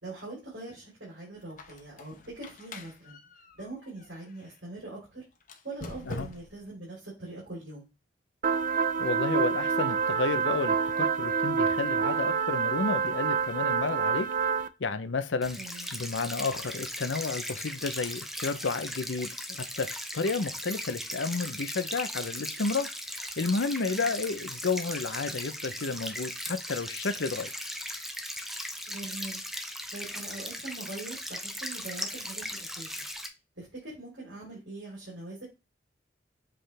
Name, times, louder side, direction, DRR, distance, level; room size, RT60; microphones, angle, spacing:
voice 1, 0.0-3.2 3.5-5.2 5.6-7.9 15.6-15.9 23.8-24.1 28.9-29.4 29.9-33.0 33.6-35.5, right 2 dB, 70° right, 3.7 m, -42 dB
Squeak, 1.4-4.6 5.4-6.7, left 3 dB, 45° left, 0.9 m, -46 dB
sound 1, 8.4-14.7, right 6 dB, 45° right, 0.4 m, -27 dB
voice 2, 9.0-14.3 14.8-15.6 15.9-19.9 20.1-22.9 23.4-27.5, left 4 dB, 80° left, 0.7 m, -31 dB
sound 2, 15.4-33.3, equal, ahead, 0.8 m, -38 dB
7.8 x 3.8 x 3.4 m
head